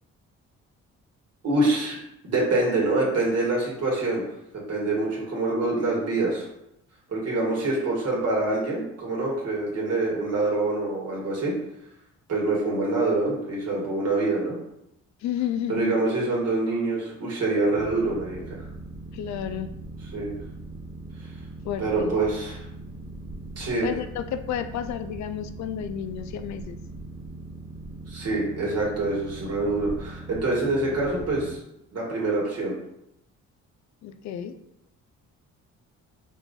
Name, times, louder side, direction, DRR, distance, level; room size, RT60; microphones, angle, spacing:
voice 1, 1.4-2.0 2.2-4.2 4.7-6.5 7.1-11.5 12.3-14.6 15.7-18.4 20.1-20.3 21.8-22.6 23.6-23.9 28.1-31.6 31.9-32.7, right 2 dB, 55° right, -4 dB, 1.8 m, -25 dB
voice 2, 15.2-16.0 19.1-19.7 21.6-22.1 23.8-26.8 34.0-34.5, left 9 dB, 70° left, 11 dB, 0.5 m, -31 dB
Boat Water vehicle, 17.8-31.6, right 2 dB, 15° right, 0.5 m, -40 dB
4.9 x 2.6 x 3.9 m, 0.81 s
cardioid pair, 90°, 30 cm